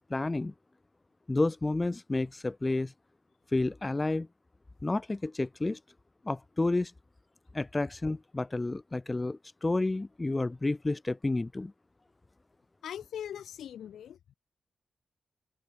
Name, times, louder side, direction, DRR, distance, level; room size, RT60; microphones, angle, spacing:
voice 1, 0.1-0.5 1.3-2.9 3.5-4.3 4.8-5.8 6.2-6.9 7.5-11.7, left 2 dB, 30° left, 0.5 m, -30 dB
voice 2, 12.8-14.2, left 9 dB, 85° left, 1.3 m, -40 dB
open air
supercardioid pair, 45°, 0 cm